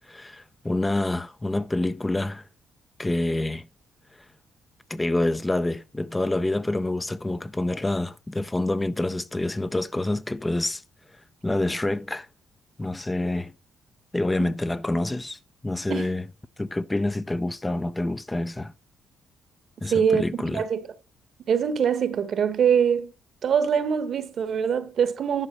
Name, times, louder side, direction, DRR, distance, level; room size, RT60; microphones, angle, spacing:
voice 1, 0.1-2.5 3.0-3.7 4.9-10.8 11.4-12.3 12.8-13.5 14.1-16.2 16.6-18.7 19.8-20.6, left 2 dB, 15° left, 0.5 m, -27 dB
voice 2, 19.8-20.9 21.4-23.1 23.4-25.5, right 7 dB, 60° right, 1.1 m, -24 dB
11.0 x 4.0 x 6.6 m
cardioid pair, 90°, 0 cm